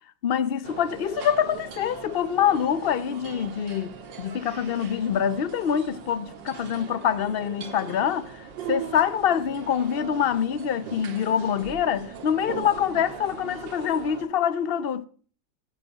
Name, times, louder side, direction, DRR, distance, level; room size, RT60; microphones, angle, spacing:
voice 1, 0.2-15.1, left 8 dB, 70° left, 0.5 m, -25 dB
sound 1, 0.6-14.3, right 7 dB, 85° right, 2.1 m, -40 dB
16.5 x 8.5 x 5.6 m
omnidirectional pair, 2.0 m